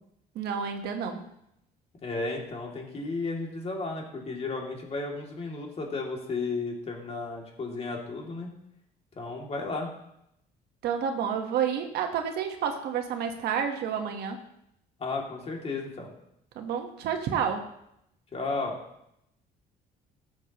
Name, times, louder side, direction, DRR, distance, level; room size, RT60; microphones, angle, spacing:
voice 1, 0.3-1.2 10.8-14.4 16.5-17.6, right 7 dB, 75° right, 5 dB, 1.3 m, -30 dB
voice 2, 2.0-8.5 9.2-9.9 15.0-16.1 18.3-18.8, left 3 dB, 35° left, 0 dB, 2.5 m, -33 dB
14.0 x 7.3 x 3.0 m, 0.79 s
cardioid pair, 110°, 17 cm